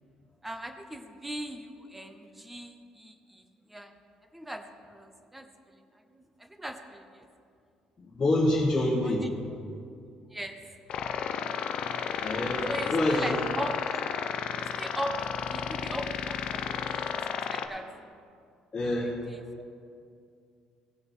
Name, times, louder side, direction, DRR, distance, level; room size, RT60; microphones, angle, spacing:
voice 1, 0.4-3.9 4.3-5.5 5.7-5.8 6.1-7.3 9.0-9.3 10.3-10.8 12.7-14.0 14.6-17.9 19.3-19.4, equal, 5° right, 7 dB, 0.7 m, -39 dB
voice 2, 8.0-9.3 12.2-13.3 18.7-19.1, left 1 dB, 20° left, -8 dB, 1.6 m, -26 dB
sound 1, 10.9-17.7, left 7 dB, 55° left, 0.6 m, -32 dB
16.5 x 6.5 x 4.5 m, 2.3 s
cardioid pair, 165°, 2 cm